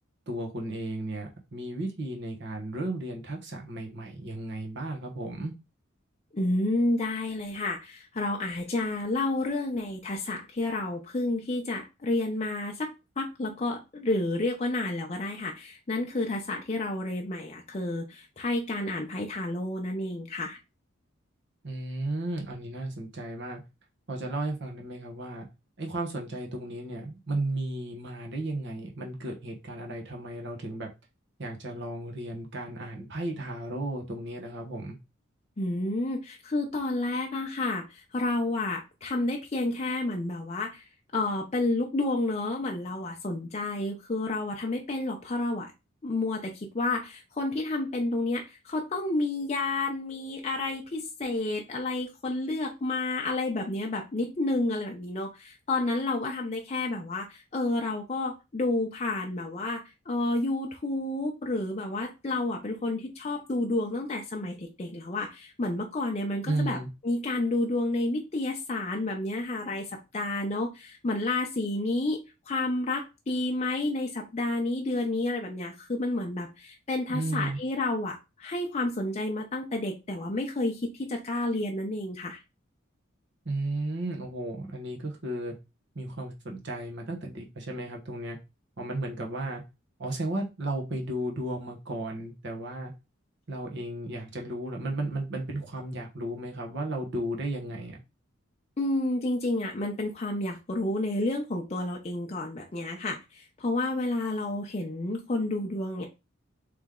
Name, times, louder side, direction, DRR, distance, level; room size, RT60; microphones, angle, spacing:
voice 1, 0.3-5.5 21.6-23.6 24.1-25.5 25.8-30.9 31.4-35.0 66.4-66.9 77.1-77.6 83.4-85.5 85.9-88.4 88.8-89.6 90.0-92.9 93.5-98.0, right 1 dB, 60° right, 1.1 m, -34 dB
voice 2, 6.3-20.6 35.6-40.8 41.1-45.7 46.0-66.8 67.0-69.9 70.1-82.4 98.8-106.1, left 2 dB, 30° left, 0.6 m, -30 dB
3.3 x 3.0 x 3.6 m
head